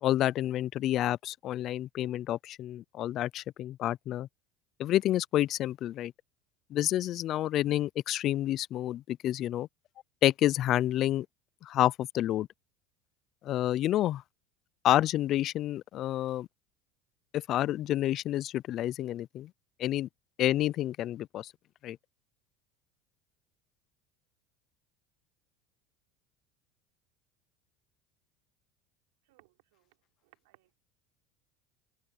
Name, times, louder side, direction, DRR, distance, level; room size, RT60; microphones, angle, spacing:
voice 1, 0.0-4.3 4.8-6.1 6.7-9.7 10.2-11.3 11.6-12.5 13.4-14.2 14.8-16.5 17.3-19.5 19.8-20.1 20.4-21.5 21.8-22.0, left 13 dB, 45° left, 0.4 m, -29 dB
voice 2, 29.2-30.0 30.2-30.7, right 22 dB, 85° right, 4.0 m, -64 dB
supercardioid pair, 135°, 0 cm